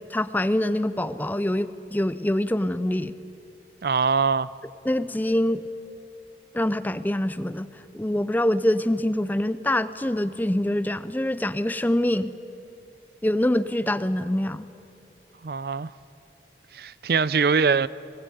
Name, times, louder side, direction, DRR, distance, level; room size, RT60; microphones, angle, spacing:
voice 1, 0.0-3.1 4.9-5.6 6.5-7.7 7.9-12.3 13.2-14.7, left 1 dB, 10° left, 0.5 m, -25 dB
voice 2, 3.8-4.5 15.4-15.9 16.7-17.9, right 5 dB, 60° right, 0.4 m, -22 dB
21.5 x 19.0 x 9.1 m
head